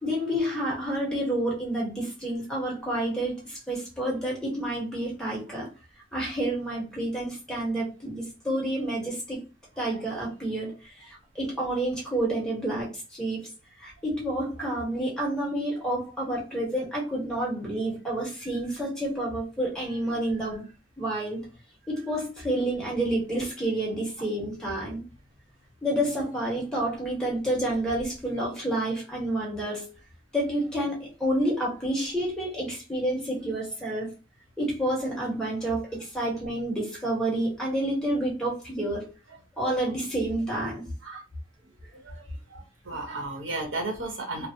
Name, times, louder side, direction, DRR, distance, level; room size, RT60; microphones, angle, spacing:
voice 1, 0.0-5.7 6.1-9.4 9.8-13.5 13.8-20.7 21.0-21.4 21.9-25.0 25.8-29.9 30.3-34.1 34.6-39.1 39.6-40.9, right 1 dB, 5° left, -4 dB, 1.3 m, -29 dB
voice 2, 42.0-44.5, right 2 dB, 90° right, 0 dB, 1.1 m, -34 dB
3.1 x 2.0 x 2.7 m, 0.30 s
head